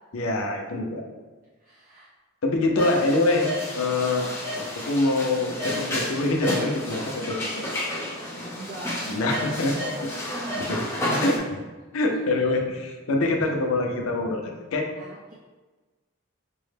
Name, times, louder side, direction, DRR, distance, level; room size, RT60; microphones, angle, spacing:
voice 1, 0.1-1.1 2.4-3.5 3.7-4.3 4.8-7.6 9.1-9.8 10.6-10.8 11.2-11.6 11.9-14.8, left 2 dB, 85° left, 1 dB, 0.6 m, -25 dB
voice 2, 1.6-2.1 8.3-9.4 9.7-10.0 10.3-10.9 11.8-12.2 12.4-12.5 15.0-15.3, right 2 dB, 40° right, -7 dB, 0.5 m, -42 dB
sound 1, 2.8-11.4, left 1 dB, 15° left, 0.6 m, -31 dB
5.2 x 2.1 x 3.3 m, 1.3 s
head